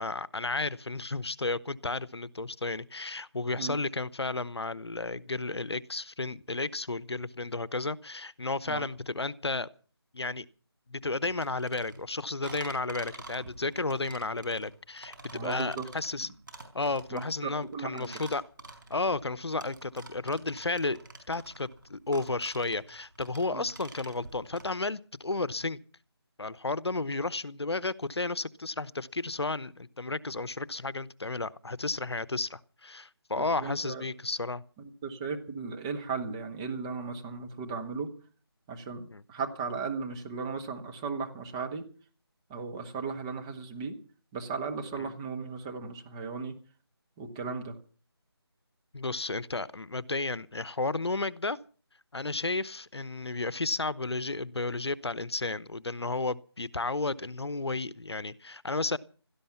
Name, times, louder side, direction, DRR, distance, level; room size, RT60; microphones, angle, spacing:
voice 1, 0.0-9.7 10.1-10.4 10.9-16.3 16.7-18.4 18.9-21.0 21.3-25.8 26.4-34.6 39.1-39.2 45.0-45.1 48.9-51.6 52.1-59.0, left 3 dB, 80° left, 0.9 m, -33 dB
sound 1, 11.2-24.7, right 3 dB, 50° right, 4.7 m, -48 dB
voice 2, 15.3-15.9 16.2-16.3 17.1-18.1 23.5-23.6 33.4-34.0 35.0-38.1 38.7-41.8 42.5-43.9 44.3-46.5 47.2-47.8, right 5 dB, 10° right, 0.9 m, -36 dB
17.0 x 13.5 x 5.8 m
figure-of-eight pair, 165°, 14 cm